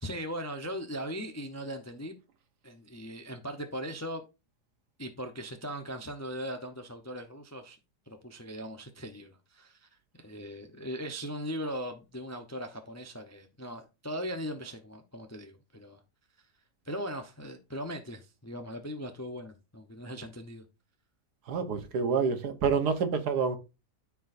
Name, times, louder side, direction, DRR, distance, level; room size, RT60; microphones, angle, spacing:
voice 1, 0.0-2.2 2.6-4.2 5.0-7.8 8.1-9.9 10.2-16.0 16.8-20.6, equal, 20° left, 0.4 m, -39 dB
voice 2, 21.5-23.6, right 5 dB, 75° right, 1.6 m, -28 dB
13.0 x 4.6 x 2.6 m
omnidirectional pair, 1.7 m